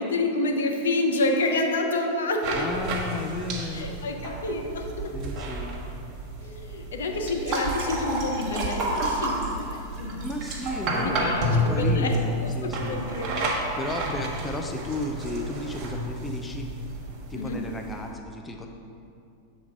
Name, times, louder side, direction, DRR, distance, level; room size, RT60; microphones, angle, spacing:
voice 1, 0.0-2.4 3.7-5.1 6.4-10.3 11.0-13.4 17.3-17.6, left 2 dB, 65° left, 2 dB, 0.7 m, -28 dB
sound 1, 2.4-18.1, right 1 dB, 35° right, 1.1 m, -30 dB
voice 2, 2.5-4.0 5.1-5.8 10.2-13.2 13.7-16.7 17.3-18.7, left 2 dB, 15° left, 3 dB, 0.4 m, -34 dB
7.1 x 3.9 x 5.0 m, 2.6 s
figure-of-eight pair, 90°, 0 cm